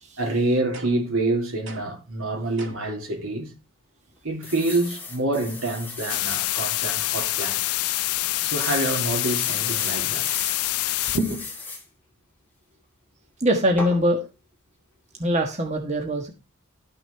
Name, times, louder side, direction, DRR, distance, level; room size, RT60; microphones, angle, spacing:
voice 1, 0.2-3.5 4.2-7.6 8.4-10.3 11.1-11.4, right 2 dB, 70° right, 3.3 m, -26 dB
sound 1, 0.7-1.2 1.7-2.1 2.6-3.0, right 3 dB, 55° right, 2.1 m, -42 dB
sound 2, 4.4-6.4 7.0-7.1 7.4-7.5 8.5-10.6 10.9-11.8 13.8-14.0, left 3 dB, 10° left, 2.2 m, -35 dB
sound 3, 6.1-11.2, left 17 dB, 80° left, 0.4 m, -26 dB
voice 2, 13.4-14.2 15.2-16.3, equal, 30° right, 1.3 m, -22 dB
13.0 x 6.3 x 4.5 m
head